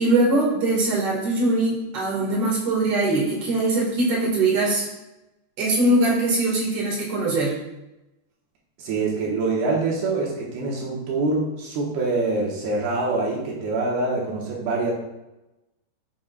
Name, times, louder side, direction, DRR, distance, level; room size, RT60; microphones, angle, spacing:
voice 1, 0.0-4.9 5.6-7.5, right 2 dB, 45° right, -3 dB, 2.4 m, -21 dB
voice 2, 8.8-14.9, right 3 dB, 75° right, -4 dB, 3.1 m, -25 dB
11.5 x 6.6 x 2.4 m, 0.96 s
omnidirectional pair, 4.7 m